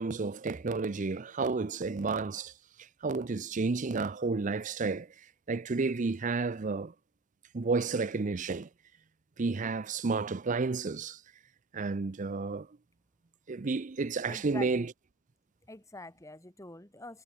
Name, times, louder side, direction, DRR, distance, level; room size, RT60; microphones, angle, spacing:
voice 1, 0.0-2.5 3.0-5.1 5.5-6.9 7.5-8.7 9.4-11.2 11.7-12.7 13.5-14.9, right 4 dB, 40° right, 0.5 m, -31 dB
voice 2, 14.3-14.9 15.7-17.2, left 2 dB, 15° left, 2.3 m, -45 dB
head